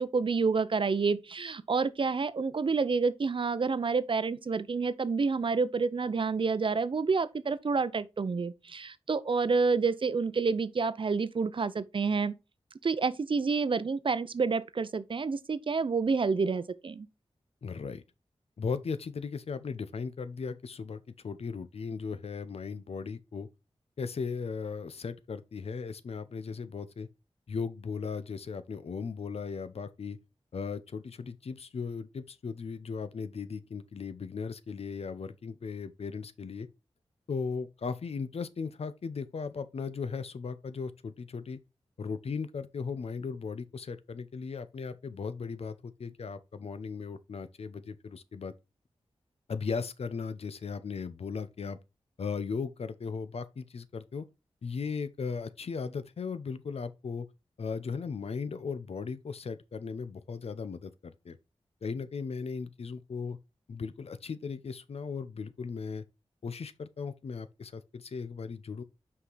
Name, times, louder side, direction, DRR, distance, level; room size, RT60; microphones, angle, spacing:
voice 1, 0.0-12.3 12.8-17.1, right 4 dB, 50° right, 0.6 m, -28 dB
voice 2, 17.6-18.0 18.6-23.5 24.0-27.1 27.5-30.2 30.5-36.7 37.3-41.6 42.0-48.5 49.5-51.8 52.2-54.3 54.6-57.3 57.6-61.4 61.8-63.4 63.7-66.0 66.4-68.8, left 5 dB, 70° left, 0.7 m, -37 dB
5.7 x 4.9 x 3.9 m
wide cardioid pair, 75°, 11 cm